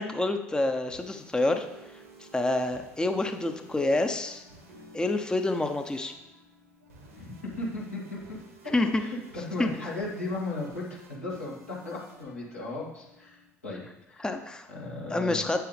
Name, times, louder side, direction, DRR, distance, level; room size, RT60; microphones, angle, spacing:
voice 1, 0.0-1.7 2.2-4.4 4.9-6.1 8.7-9.0 9.6-9.7 14.2-14.7 15.1-15.6, left 2 dB, 10° left, 6 dB, 0.7 m, -27 dB
sound 1, 0.7-13.5, right 1 dB, 80° right, 1.5 m, -52 dB
voice 2, 7.2-8.4 8.6-13.4 13.6-13.8 14.1-14.3 14.7-15.5, left 2 dB, 80° left, -6 dB, 2.3 m, -36 dB
8.4 x 7.7 x 3.4 m, 0.91 s
figure-of-eight pair, 55°, 8 cm